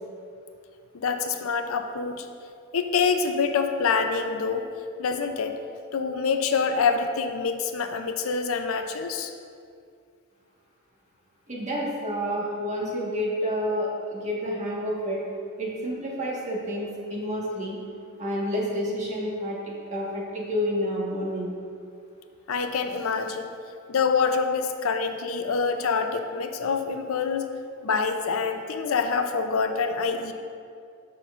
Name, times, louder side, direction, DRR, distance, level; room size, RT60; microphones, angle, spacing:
voice 1, 0.9-2.3 2.7-4.7 5.0-5.6 5.9-9.3 22.5-23.5 23.9-27.5 27.8-30.3, left 5 dB, 85° left, 7 dB, 0.5 m, -26 dB
voice 2, 11.5-15.2 15.6-17.8 18.2-21.5, equal, 35° right, -4 dB, 1.5 m, -29 dB
12.0 x 5.6 x 2.5 m, 2.4 s
head